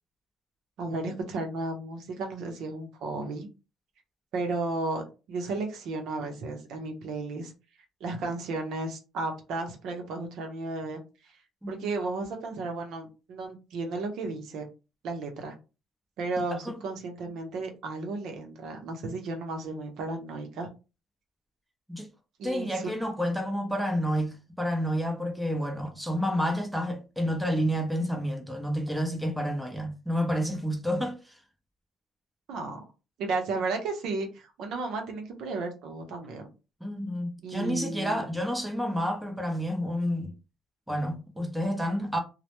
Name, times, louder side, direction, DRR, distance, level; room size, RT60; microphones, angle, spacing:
voice 1, 0.8-3.5 4.3-5.0 5.3-7.5 8.0-11.4 11.7-14.7 15.0-15.6 16.2-20.7 22.4-22.9 32.5-32.8 33.2-36.5 37.4-38.2, right 3 dB, 70° right, 0.7 m, -34 dB
voice 2, 22.4-31.4 36.8-40.3 40.9-42.2, equal, ahead, 0.6 m, -29 dB
2.1 x 2.1 x 2.9 m
cardioid pair, 90°, 0 cm